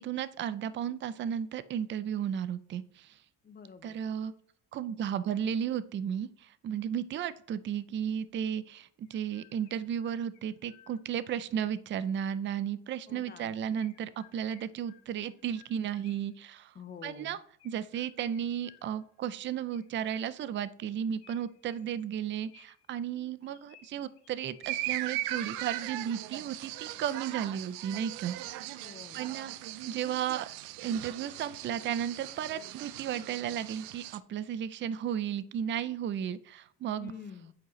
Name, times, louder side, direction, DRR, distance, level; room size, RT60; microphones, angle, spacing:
voice 1, 0.0-3.2 3.8-4.3 4.7-16.7 17.0-17.4 17.6-28.4 29.1-29.5 29.9-30.5 30.8-37.1, right 9 dB, 35° right, 16 dB, 0.4 m, -34 dB
voice 2, 3.4-4.0 13.1-13.5 16.8-17.4 28.8-29.4 37.0-37.5, left 6 dB, 30° left, 11 dB, 0.5 m, -47 dB
Chirp tweet, 8.3-8.4 9.1-11.7 13.8-16.4 17.6-19.2 19.7-20.6 21.2-23.0 23.4-24.9, left 10 dB, 85° left, 1.0 m, -61 dB
sound 1, 24.6-34.2, right 14 dB, 85° right, 0.5 m, -39 dB
8.2 x 4.9 x 3.1 m, 0.63 s
cardioid pair, 115°, 36 cm